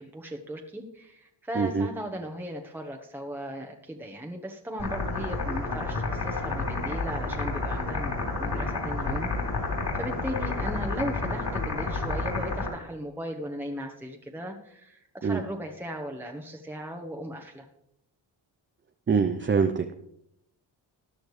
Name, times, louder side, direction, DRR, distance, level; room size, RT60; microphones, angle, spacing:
voice 1, 0.0-9.3 9.9-17.7, equal, 5° right, 3 dB, 1.1 m, -37 dB
voice 2, 1.6-1.9 15.2-15.4 19.1-19.9, right 5 dB, 25° right, 6 dB, 0.6 m, -24 dB
sound 1, 4.8-12.7, left 3 dB, 45° left, 4.0 m, -30 dB
14.0 x 10.5 x 3.2 m, 0.78 s
cardioid pair, 85°, 47 cm